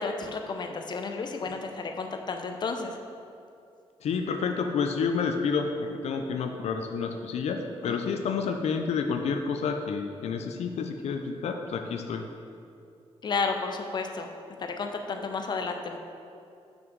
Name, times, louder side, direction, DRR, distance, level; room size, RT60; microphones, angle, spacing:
voice 1, 0.0-2.9 7.8-7.9 13.2-14.3 14.6-16.0, left 4 dB, 45° left, 4 dB, 0.6 m, -32 dB
voice 2, 4.0-12.2, left 5 dB, 85° left, 5 dB, 0.5 m, -29 dB
6.1 x 6.0 x 5.2 m, 2.5 s
wide cardioid pair, 120°, 11 cm